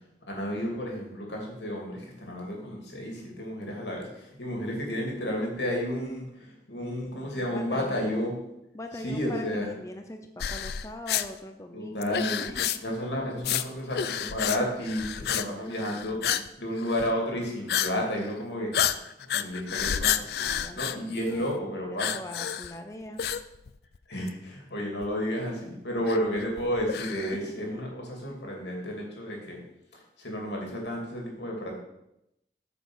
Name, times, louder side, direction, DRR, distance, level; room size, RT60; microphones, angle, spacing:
voice 1, 0.3-8.3 9.0-9.7 11.7-12.5 12.8-16.2 16.6-18.7 19.2-20.3 20.7-22.1 24.1-29.6 29.9-31.8, equal, 85° left, 0 dB, 2.6 m, -32 dB
voice 2, 7.3-8.3 8.7-12.8 15.7-16.5 20.4-20.9 21.3-23.2 27.3-27.8, left 1 dB, 15° left, 5 dB, 0.5 m, -42 dB
sound 1, 10.4-11.3 12.0-13.0 13.4-13.6 13.9-14.6 14.8-15.5 15.7-16.5 16.8-17.1 17.7-17.9 18.2-18.3 18.7-21.6 22.0-22.8 23.2-24.0 24.3-24.4 25.0-25.1 26.1-27.4, left 9 dB, 65° left, 0.4 m, -30 dB
8.1 x 5.1 x 6.2 m, 0.86 s
head